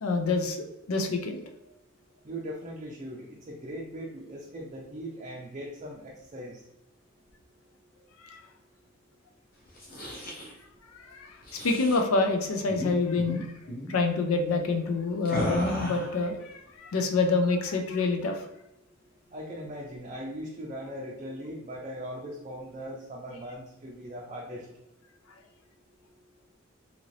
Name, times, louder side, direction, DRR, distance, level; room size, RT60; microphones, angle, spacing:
voice 1, 0.0-0.6 0.9-1.4 8.2-8.4 10.9-13.5 13.9-18.5, left 3 dB, 90° left, 4 dB, 0.5 m, -27 dB
voice 2, 2.2-6.6 19.3-24.7, equal, 30° right, -3 dB, 0.4 m, -39 dB
sound 1, 9.7-10.5 11.4-12.0 12.7-12.9 13.2-13.4 13.7-13.9 15.3-16.2, equal, 45° left, 0.7 m, -35 dB
2.8 x 2.6 x 3.1 m, 0.88 s
head